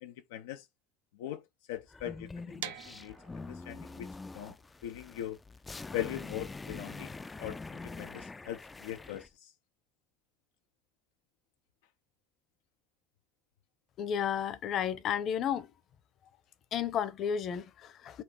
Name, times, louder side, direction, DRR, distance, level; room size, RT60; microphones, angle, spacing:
voice 1, 0.0-0.7 1.2-4.1 4.3-4.6 4.8-5.4 5.9-9.5, left 12 dB, 85° left, 0.5 m, -41 dB
sound 1, 1.9-9.3, left 3 dB, 20° left, 0.4 m, -45 dB
sound 2, 2.6-8.4, right 10 dB, 85° right, 0.8 m, -48 dB
voice 2, 14.0-15.7 16.7-18.2, left 8 dB, 55° left, 0.8 m, -32 dB
4.4 x 2.4 x 4.6 m
hypercardioid pair, 80°, 0 cm